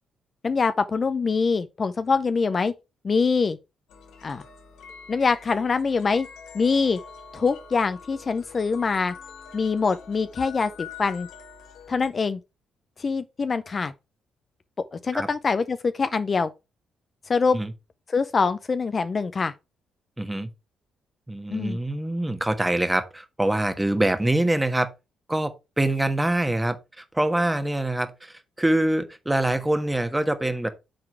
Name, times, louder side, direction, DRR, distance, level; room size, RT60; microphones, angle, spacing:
voice 1, 0.4-2.7 3.0-3.6 4.2-4.4 5.1-6.3 6.5-7.0 7.3-9.1 9.5-11.3 11.9-12.4 13.0-13.9 14.9-16.5 17.3-17.6 18.1-19.5 21.5-21.8, left 4 dB, 35° left, 0.5 m, -24 dB
sound 1, 3.9-12.1, left 6 dB, 85° left, 1.7 m, -45 dB
voice 2, 20.2-20.5 21.3-24.9 25.3-30.7, right 1 dB, 10° right, 1.3 m, -25 dB
7.7 x 3.8 x 4.9 m
cardioid pair, 90°, 0 cm